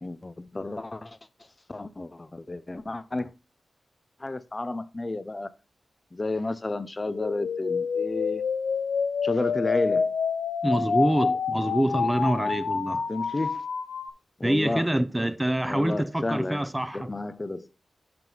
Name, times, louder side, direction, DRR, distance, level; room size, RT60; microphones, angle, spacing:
voice 1, 0.0-1.2 1.7-3.3 4.2-5.5 6.1-8.4 9.2-10.1 13.1-13.6 14.4-14.9 15.7-16.7 16.9-17.7, left 2 dB, 30° left, 0.9 m, -31 dB
sound 1, 7.1-14.1, left 5 dB, 80° left, 0.6 m, -28 dB
voice 2, 10.6-13.1 14.4-17.1, right 1 dB, 15° right, 0.9 m, -26 dB
11.0 x 3.9 x 4.6 m
cardioid pair, 50°, 0 cm